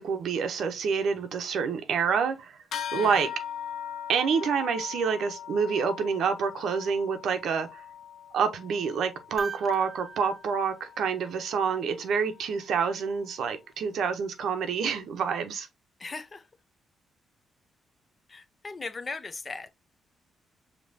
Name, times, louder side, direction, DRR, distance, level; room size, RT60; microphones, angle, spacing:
voice 1, 0.0-2.6 2.9-3.3 4.1-7.8 8.3-15.7, right 6 dB, 75° right, 0.7 m, -27 dB
sound 1, 2.7-12.5, left 9 dB, 80° left, 0.5 m, -41 dB
voice 2, 3.0-3.3 16.0-16.5 18.3-19.7, left 3 dB, 30° left, 0.5 m, -38 dB
sound 2, 9.4-11.7 13.7-13.8, right 5 dB, 20° right, 0.5 m, -41 dB
5.2 x 2.9 x 2.7 m
cardioid pair, 90°, 0 cm